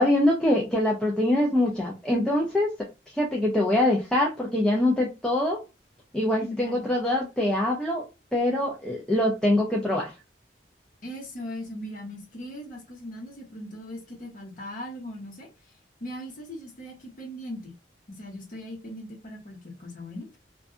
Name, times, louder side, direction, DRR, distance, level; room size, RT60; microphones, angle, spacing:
voice 1, 0.0-2.7 3.1-5.6 6.1-8.0 8.3-10.1, left 1 dB, 5° left, 0.4 m, -24 dB
voice 2, 6.3-6.9 11.0-17.7 18.1-20.3, equal, 45° left, 0.9 m, -39 dB
2.6 x 2.3 x 2.4 m
head